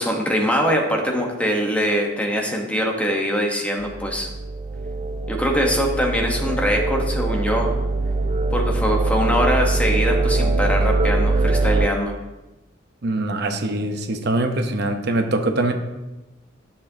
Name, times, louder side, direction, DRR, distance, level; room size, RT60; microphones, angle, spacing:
voice 1, 0.0-4.3 5.3-7.7 8.5-12.1, equal, 5° left, 1 dB, 1.0 m, -22 dB
sound 1, 3.8-11.9, right 3 dB, 30° right, 0.3 m, -22 dB
voice 2, 13.0-15.7, right 2 dB, 55° right, 6 dB, 0.8 m, -23 dB
10.5 x 6.9 x 2.7 m, 1.0 s
head